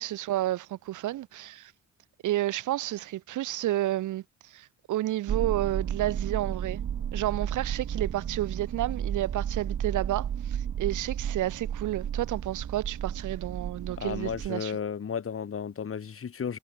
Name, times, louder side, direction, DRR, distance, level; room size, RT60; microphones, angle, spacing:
voice 1, 0.0-1.7 2.2-4.2 4.5-6.8 7.1-14.7, right 14 dB, 80° right, 1.7 m, -31 dB
sound 1, 5.3-14.5, right 9 dB, 55° right, 3.7 m, -33 dB
voice 2, 14.0-16.6, left 7 dB, 45° left, 6.4 m, -33 dB
cardioid pair, 90°, 30 cm